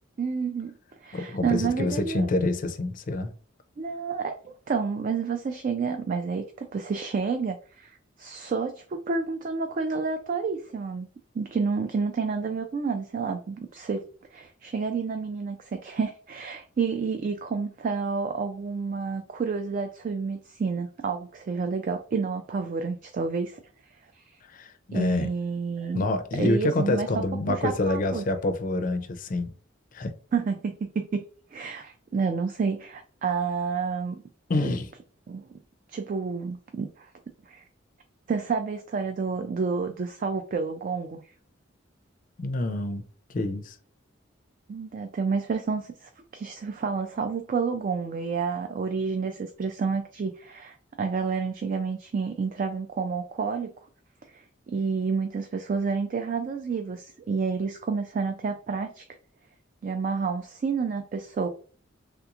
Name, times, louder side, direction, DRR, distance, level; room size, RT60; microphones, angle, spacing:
voice 1, 0.2-0.7 1.0-2.3 3.8-11.1 11.3-14.0 14.3-23.6 24.1-24.4 24.9-26.0 26.4-28.2 30.3-31.2 31.5-34.2 34.6-34.7 35.3-35.5 35.9-37.1 37.5-37.6 38.3-41.2 44.7-53.7 54.3-59.0 59.8-61.5, right 5 dB, 45° right, 0.3 m, -29 dB
voice 2, 1.1-3.3 24.5-25.3 25.9-29.5 29.9-30.1 34.5-34.9 42.4-43.0 43.3-43.8, left 2 dB, 40° left, 0.4 m, -27 dB
3.3 x 2.9 x 2.4 m
head